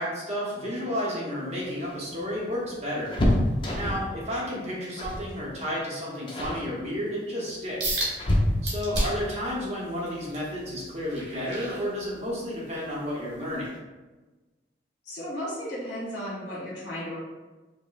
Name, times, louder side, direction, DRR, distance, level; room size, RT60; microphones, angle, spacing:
voice 1, 0.0-3.1 3.7-8.0 8.6-13.7, equal, 35° right, -5 dB, 0.7 m, -32 dB
sound 1, 1.5-4.2 5.0-5.3 5.6-5.9 6.3-6.7 7.5-9.0 10.7-10.8 11.2-11.3 12.4-12.9 13.2-13.3 13.6-13.8, left 1 dB, 30° left, 0.4 m, -28 dB
sound 2, 7.8-8.1 8.6-9.3 9.8-12.4 12.9-13.1 13.7-13.8, right 1 dB, 90° right, 1.2 m, -31 dB
voice 2, 15.0-17.2, equal, 75° left, -7 dB, 1.2 m, -34 dB
4.9 x 2.1 x 2.3 m, 1.2 s
head